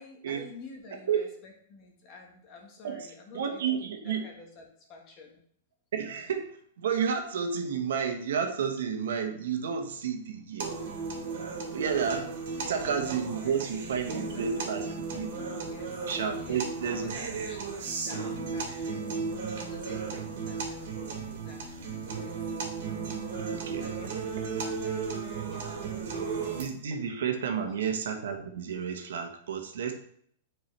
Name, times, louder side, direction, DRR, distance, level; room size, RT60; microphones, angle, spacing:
voice 1, 0.0-4.6 4.9-5.4 12.5-13.7 14.3-15.2 15.6-16.1 16.4-22.3 22.8-22.9 23.4-26.5 27.6-27.9, left 3 dB, 30° left, 1 dB, 1.4 m, -51 dB
voice 2, 3.3-4.2 5.9-10.7 11.7-12.3 12.7-14.8 15.1-15.3 16.1-17.2 20.1-20.2 23.5-23.9 26.5-29.9, right 7 dB, 80° right, 5 dB, 1.2 m, -31 dB
sound 1, 10.6-26.6, right 5 dB, 60° right, 2.2 m, -35 dB
9.0 x 4.6 x 3.3 m, 0.63 s
supercardioid pair, 170°, 0 cm